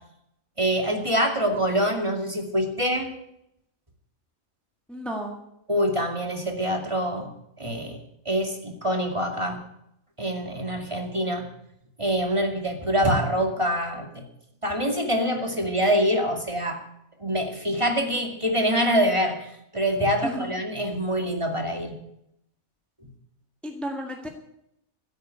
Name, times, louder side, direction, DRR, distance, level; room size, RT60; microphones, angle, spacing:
voice 1, 0.6-3.1 5.7-7.3 7.6-8.0 8.3-9.6 10.2-11.5 12.0-14.2 14.6-16.8 17.2-22.0 23.0-23.1, equal, 20° right, 2 dB, 2.4 m, -25 dB
voice 2, 4.9-5.4 20.2-20.6 23.6-24.3, equal, ahead, 1 dB, 1.8 m, -32 dB
15.5 x 8.8 x 9.2 m, 0.78 s
omnidirectional pair, 1.5 m